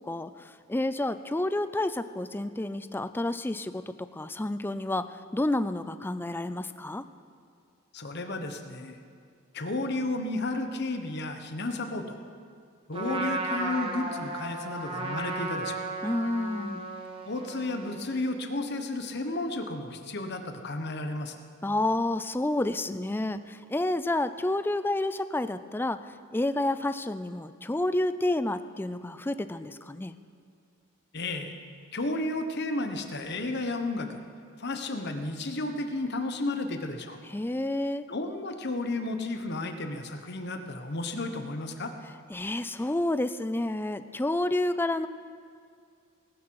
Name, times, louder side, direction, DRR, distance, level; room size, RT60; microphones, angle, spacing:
voice 1, 0.0-7.0 16.0-16.8 21.6-30.2 37.3-38.0 42.3-45.1, left 1 dB, 10° left, 12 dB, 0.4 m, -30 dB
voice 2, 7.9-9.0 9.5-12.2 12.9-15.8 17.2-21.3 31.1-31.6 31.9-34.2 34.6-37.2 38.1-41.9, left 2 dB, 55° left, 6 dB, 1.1 m, -32 dB
Trumpet, 12.9-18.2, right 2 dB, 25° right, 1.5 m, -34 dB
19.0 x 12.5 x 4.8 m, 2.2 s
head